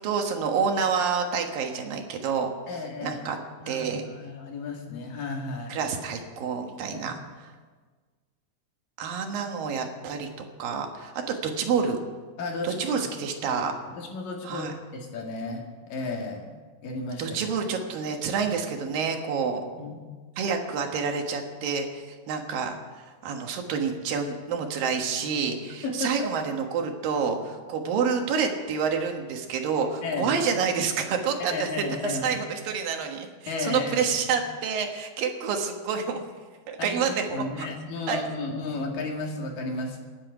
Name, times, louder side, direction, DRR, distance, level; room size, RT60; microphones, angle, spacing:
voice 1, 0.0-2.5 3.0-3.4 3.7-4.0 5.7-7.2 9.0-12.0 12.6-13.7 14.4-14.7 17.2-19.6 20.4-31.7 32.0-36.2 36.7-37.7 38.1-38.2, right 6 dB, 80° right, 4 dB, 3.2 m, -28 dB
voice 2, 2.7-3.2 3.6-5.8 6.9-7.2 12.4-13.1 13.5-13.6 14.0-16.5 16.8-17.4 19.8-20.0 25.8-26.3 30.0-30.3 31.4-32.3 33.5-33.9 34.3-34.4 36.8-40.0, left 3 dB, 75° left, 1 dB, 3.8 m, -33 dB
27.5 x 10.0 x 5.0 m, 1.4 s
omnidirectional pair, 4.0 m